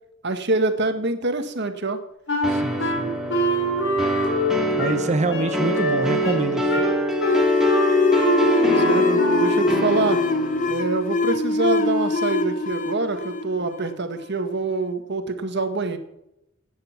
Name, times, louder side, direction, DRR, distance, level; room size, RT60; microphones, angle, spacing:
voice 1, 0.2-2.0 5.3-5.5 8.6-10.2 10.7-16.0, right 3 dB, 55° right, 8 dB, 1.6 m, -25 dB
Wind instrument woodwind instrument, 2.3-9.7, left 1 dB, 65° left, 4.4 m, -25 dB
sound 1, 2.4-10.7, right 1 dB, ahead, 2.3 m, -25 dB
voice 2, 2.5-3.1 4.8-6.9, right 2 dB, 35° right, 10 dB, 0.9 m, -26 dB
sound 2, 7.2-14.4, left 3 dB, 40° left, 1.0 m, -23 dB
15.5 x 9.8 x 5.9 m, 0.83 s
head